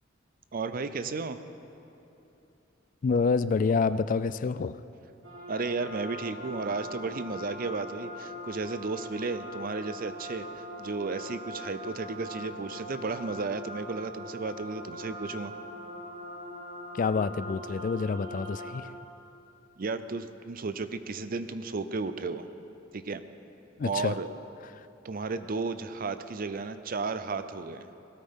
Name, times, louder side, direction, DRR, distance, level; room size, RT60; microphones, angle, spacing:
voice 1, 0.5-1.4 5.5-15.5 19.8-22.5 22.9-23.2 23.8-24.3 25.0-27.9, right 4 dB, 45° right, 11 dB, 0.5 m, -33 dB
voice 2, 3.0-4.8 16.9-18.9 23.8-24.2, left 4 dB, 40° left, 14 dB, 0.3 m, -27 dB
sound 1, 5.2-18.7, left 1 dB, 90° right, 3.7 m, -41 dB
18.0 x 13.0 x 3.7 m, 2.9 s
head